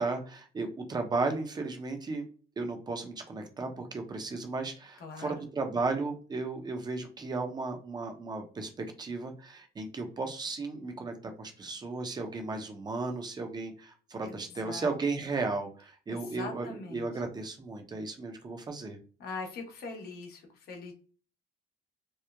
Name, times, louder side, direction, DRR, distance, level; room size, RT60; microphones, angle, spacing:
voice 1, 0.0-2.2 2.6-19.0, right 3 dB, 25° right, 5 dB, 0.6 m, -35 dB
voice 2, 5.0-5.3 14.2-15.0 16.1-17.2 19.2-20.9, left 4 dB, 65° left, 2 dB, 1.0 m, -42 dB
2.9 x 2.0 x 2.3 m, 0.39 s
cardioid pair, 110°, 17 cm